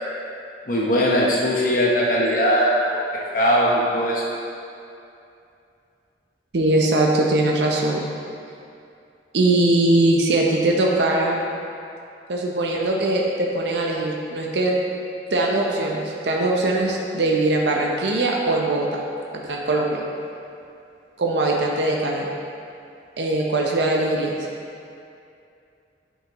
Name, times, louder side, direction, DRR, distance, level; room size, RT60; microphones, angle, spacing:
voice 1, 0.7-2.9 3.3-4.2, equal, 50° left, -4 dB, 0.9 m, -19 dB
voice 2, 6.5-8.0 9.3-11.4 12.3-14.7 15.3-19.0 19.3-20.0 21.2-22.3 23.2-24.3, right 2 dB, 75° right, -1 dB, 0.7 m, -21 dB
8.6 x 5.5 x 3.0 m, 2.6 s
head